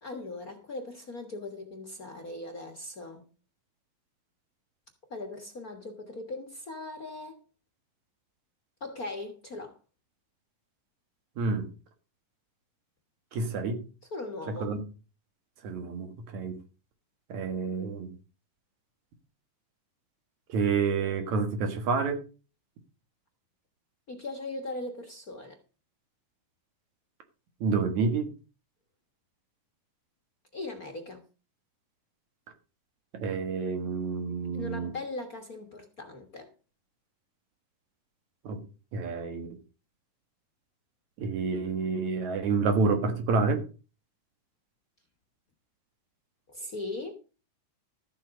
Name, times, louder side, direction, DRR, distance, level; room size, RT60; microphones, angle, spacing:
voice 1, 0.0-3.3 5.1-7.4 8.8-9.8 14.1-14.8 24.1-25.6 30.5-31.2 34.5-36.5 46.5-47.1, left 2 dB, 45° left, 1.2 m, -39 dB
voice 2, 11.4-11.7 13.3-13.8 14.6-14.8 15.6-16.6 17.3-18.1 20.5-22.2 27.6-28.3 33.1-34.9 38.4-38.6 38.9-39.5 41.2-43.6, right 4 dB, 65° right, 2.9 m, -28 dB
13.5 x 7.5 x 5.2 m
omnidirectional pair, 3.7 m